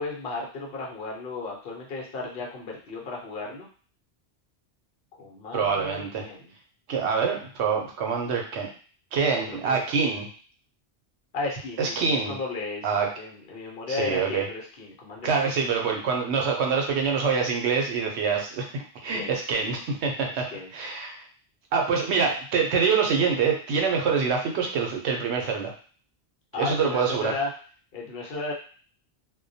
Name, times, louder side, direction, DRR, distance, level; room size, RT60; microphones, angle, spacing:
voice 1, 0.0-3.7 5.2-6.5 9.3-9.8 11.3-15.5 19.1-19.7 20.5-20.7 26.5-27.5 27.9-28.5, left 3 dB, 60° left, -1 dB, 0.9 m, -34 dB
voice 2, 5.5-6.2 6.9-8.7 9.1-10.3 11.8-12.4 12.8-13.1 13.9-14.4 15.2-20.5 20.7-21.2 21.7-25.7 26.6-27.3, right 5 dB, 80° right, 2 dB, 0.9 m, -25 dB
2.2 x 2.1 x 2.6 m, 0.41 s
omnidirectional pair, 1.1 m